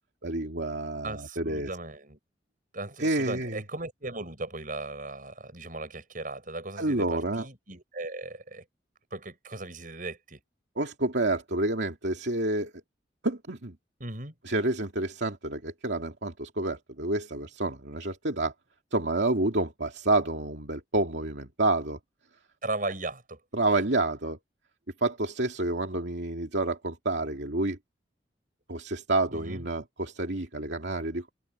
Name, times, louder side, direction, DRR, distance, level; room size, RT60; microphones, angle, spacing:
voice 1, 0.2-1.7 3.0-3.6 6.8-7.5 10.8-12.7 13.2-13.8 14.4-18.5 18.9-22.0 22.8-22.9 23.5-24.4 25.0-27.8 28.7-31.3, right 2 dB, 75° right, 2.5 m, -29 dB
voice 2, 1.0-2.2 2.7-8.6 9.1-10.4 14.0-14.4 22.6-23.4 29.3-29.6, right 2 dB, 50° right, 7.7 m, -37 dB
head